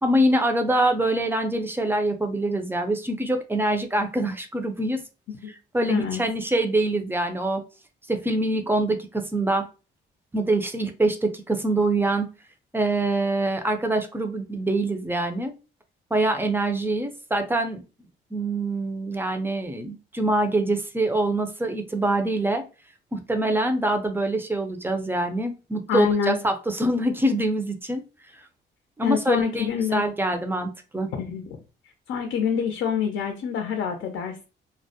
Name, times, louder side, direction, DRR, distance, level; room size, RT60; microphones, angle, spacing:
voice 1, 0.0-5.0 5.7-7.6 8.1-9.7 10.3-12.3 12.7-15.5 16.1-17.8 18.3-22.6 23.1-28.0 29.0-31.1, right 1 dB, 10° right, 6 dB, 0.4 m, -24 dB
voice 2, 5.9-6.2 25.9-26.4 29.0-30.0 31.1-31.6 32.1-34.4, left 7 dB, 75° left, 4 dB, 0.5 m, -26 dB
2.2 x 2.0 x 2.7 m, 0.32 s
cardioid pair, 90°, 20 cm